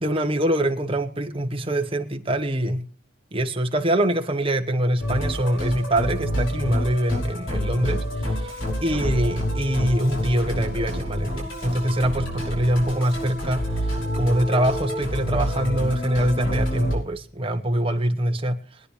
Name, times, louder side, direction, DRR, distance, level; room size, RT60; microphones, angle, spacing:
voice 1, 0.0-2.9 3.3-18.8, right 1 dB, 30° right, 1.2 m, -24 dB
Musical instrument, 5.0-16.9, equal, 75° left, 6.0 m, -28 dB
23.5 x 10.0 x 3.3 m
head